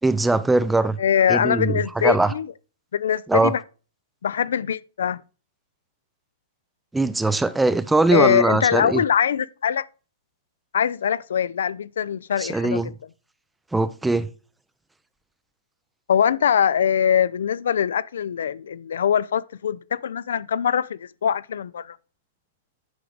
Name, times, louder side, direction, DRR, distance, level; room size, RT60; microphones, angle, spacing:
voice 1, 0.0-1.0 1.3-2.3 3.3-3.5 6.9-9.0 12.4-12.9 13.7-14.3, right 2 dB, 5° right, 0.3 m, -21 dB
voice 2, 1.0-2.5 2.9-3.6 4.2-5.2 8.1-9.9 10.7-12.9 16.1-22.0, left 8 dB, 80° left, 0.4 m, -22 dB
9.4 x 4.6 x 3.9 m
hypercardioid pair, 155°, 0 cm